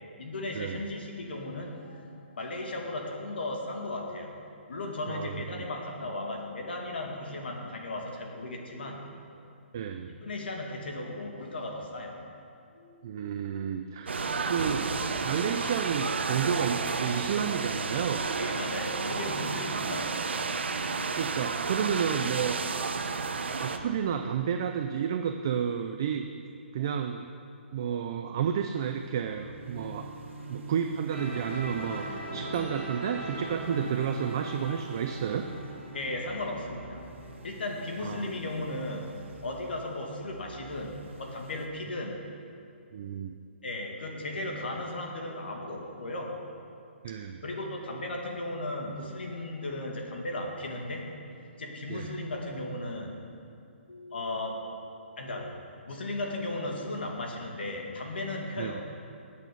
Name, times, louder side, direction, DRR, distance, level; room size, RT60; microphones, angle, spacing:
voice 1, 0.0-9.4 10.1-12.3 12.7-13.1 18.4-20.5 23.0-23.2 35.9-37.2 37.4-42.3 43.6-46.5 47.1-47.2 47.4-51.2 51.6-53.3 53.9-58.9, left 2 dB, 55° left, 1 dB, 2.2 m, -36 dB
voice 2, 5.1-5.7 9.7-10.1 13.0-14.1 14.5-14.9 15.2-18.3 21.2-22.6 23.6-26.3 26.7-27.3 27.7-30.1 30.5-35.5 38.0-38.3 42.9-43.3 47.0-47.4 51.9-52.1 58.6-58.7, right 8 dB, 20° right, 6 dB, 0.3 m, -31 dB
sound 1, 14.1-23.8, right 4 dB, 65° right, 0.9 m, -31 dB
sound 2, 28.8-41.7, right 3 dB, 80° right, 1.8 m, -46 dB
sound 3, 31.1-37.9, right 1 dB, 5° left, 3.3 m, -41 dB
20.0 x 8.4 x 5.3 m, 2.5 s
hypercardioid pair, 180°, 7 cm